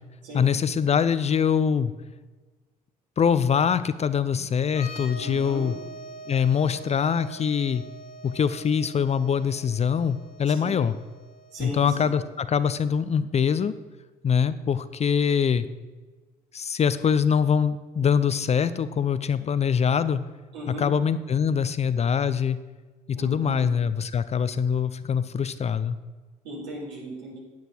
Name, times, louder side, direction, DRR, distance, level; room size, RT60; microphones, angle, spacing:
voice 1, 0.3-1.9 3.2-5.8 6.3-7.8 8.2-10.9 11.6-13.7 14.2-15.7 16.5-20.2 20.7-22.6 23.1-26.0, left 7 dB, 35° left, 14 dB, 0.6 m, -23 dB
sound 1, 4.7-12.2, right 1 dB, 60° left, 2.0 m, -44 dB
voice 2, 5.2-5.7 10.5-10.7 11.5-12.1 20.5-20.8 23.2-23.6 26.4-27.4, right 1 dB, 75° right, -3 dB, 3.4 m, -37 dB
9.4 x 9.3 x 4.6 m, 1.3 s
hypercardioid pair, 50°, 19 cm